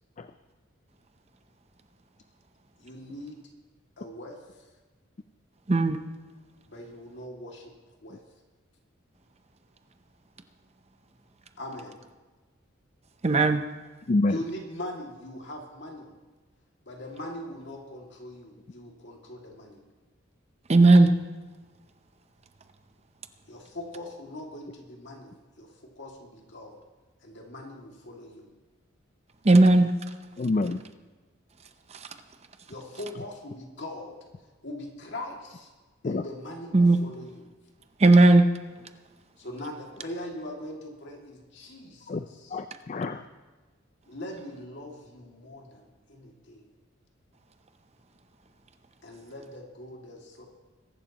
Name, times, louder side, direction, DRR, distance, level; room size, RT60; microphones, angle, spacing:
voice 1, 2.8-3.4 4.0-4.4 6.7-7.7 8.0-8.2 11.6-12.0 14.3-16.1 16.9-19.8 23.5-26.8 27.2-28.5 32.7-34.2 34.6-35.7 36.0-37.4 39.4-42.6 44.1-46.7 49.0-50.4, left 1 dB, 60° left, 0 dB, 2.4 m, -41 dB
voice 2, 13.2-13.6 20.7-21.1 29.4-29.9 36.7-37.0 38.0-38.4, right 2 dB, 30° right, 8 dB, 0.7 m, -16 dB
voice 3, 14.1-14.4 30.4-30.8 36.0-36.2 42.1-42.2 42.5-43.2, left 2 dB, 35° left, 10 dB, 0.4 m, -27 dB
22.0 x 11.5 x 3.0 m, 1.3 s
head